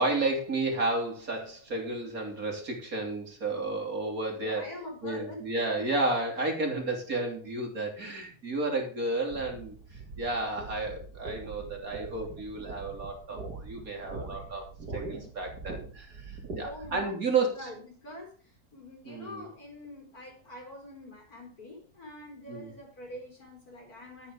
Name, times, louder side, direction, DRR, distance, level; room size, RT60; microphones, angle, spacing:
voice 1, 0.0-4.7 5.0-14.7 14.9-17.7 19.1-19.5 22.5-22.7, right 2 dB, 60° right, 1 dB, 3.6 m, -32 dB
voice 2, 4.4-5.8 8.0-8.1 16.6-24.3, left 1 dB, 70° left, 2 dB, 5.0 m, -45 dB
sound 1, 9.3-17.0, right 3 dB, 90° right, 2.8 m, -42 dB
12.5 x 8.9 x 5.0 m, 0.41 s
omnidirectional pair, 1.7 m